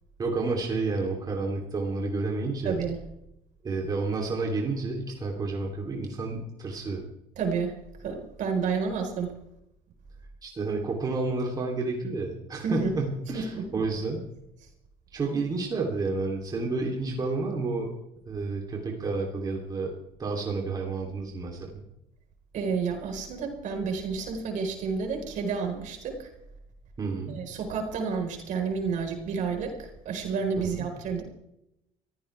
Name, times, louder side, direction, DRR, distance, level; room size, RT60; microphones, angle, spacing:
voice 1, 0.2-2.8 3.6-7.0 10.4-14.2 15.1-17.9 18.2-19.9 20.2-21.8 27.0-27.4 30.6-30.9, right 3 dB, 25° right, 0 dB, 3.2 m, -30 dB
voice 2, 2.6-3.0 7.4-7.7 8.0-9.3 12.6-12.9 13.3-13.8 22.5-26.3 27.3-31.2, right 5 dB, 55° right, 4 dB, 4.4 m, -30 dB
24.0 x 15.5 x 3.4 m, 0.83 s
cardioid pair, 145°, 16 cm